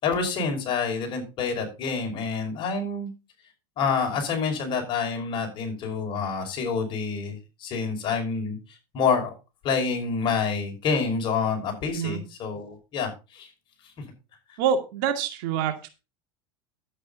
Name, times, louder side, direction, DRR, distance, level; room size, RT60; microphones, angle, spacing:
voice 1, 0.0-3.1 3.8-7.4 7.6-8.6 8.9-9.3 9.6-13.5, left 5 dB, 45° left, 3 dB, 5.6 m, -27 dB
voice 2, 14.6-15.9, right 7 dB, 70° right, 6 dB, 2.3 m, -26 dB
11.5 x 9.0 x 4.0 m, 0.28 s
supercardioid pair, 120°, 12 cm